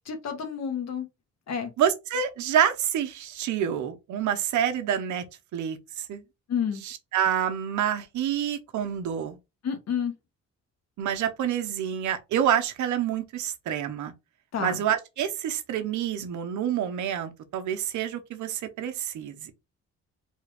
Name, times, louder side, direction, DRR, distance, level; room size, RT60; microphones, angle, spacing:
voice 1, 0.0-1.1 1.5-1.7 6.5-6.8 9.6-10.1 14.5-14.8, left 7 dB, 60° left, 1.3 m, -29 dB
voice 2, 1.8-5.3 5.5-6.2 6.8-9.4 11.0-14.1 14.6-19.5, right 9 dB, 70° right, 0.8 m, -27 dB
3.6 x 2.4 x 3.4 m
cardioid pair, 90°, 30 cm